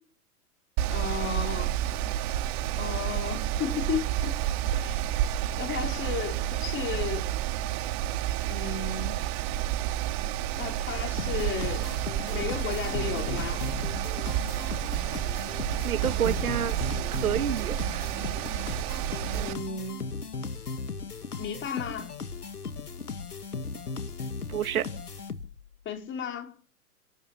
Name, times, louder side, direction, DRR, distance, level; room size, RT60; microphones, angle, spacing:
Mechanical fan, 0.8-19.5, right 12 dB, 45° right, 3.1 m, -30 dB
voice 1, 0.9-1.7 2.8-4.3 4.7-5.2 5.6-7.3 8.5-9.2 10.5-11.9 12.3-13.6 19.3-20.0 21.4-22.1 25.8-26.5, left 6 dB, 25° left, 5.6 m, -34 dB
sound 1, 11.2-25.7, left 4 dB, 90° left, 2.3 m, -37 dB
voice 2, 15.8-16.8 17.1-18.1 24.5-24.9, right 9 dB, 70° right, 2.4 m, -29 dB
29.5 x 12.5 x 7.2 m
hypercardioid pair, 110°, 44 cm